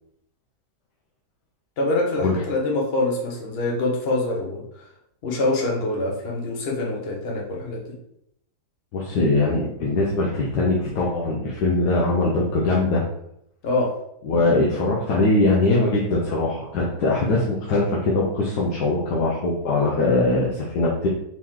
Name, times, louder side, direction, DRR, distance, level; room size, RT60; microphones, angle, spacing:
voice 1, 1.8-4.8 5.2-7.8 13.6-13.9, left 2 dB, 45° left, -1 dB, 1.0 m, -25 dB
voice 2, 8.9-13.0 14.2-21.1, left 2 dB, 80° left, -4 dB, 1.4 m, -21 dB
4.5 x 3.0 x 3.6 m, 0.76 s
omnidirectional pair, 1.8 m